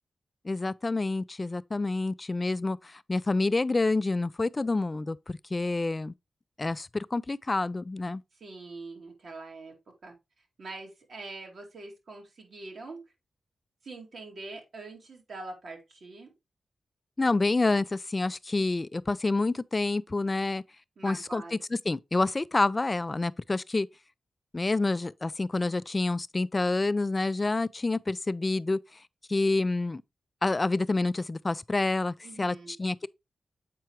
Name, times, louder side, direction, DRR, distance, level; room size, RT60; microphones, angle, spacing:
voice 1, 0.4-6.1 6.6-8.2 17.2-20.6 21.0-21.4 21.9-23.9 24.5-28.8 29.3-30.0 30.4-33.1, left 3 dB, 35° left, 0.3 m, -28 dB
voice 2, 8.3-9.7 10.0-13.0 13.8-16.3 21.0-21.5 32.2-32.8, right 3 dB, 70° right, 2.2 m, -44 dB
7.6 x 4.6 x 2.9 m
cardioid pair, 55°, 0 cm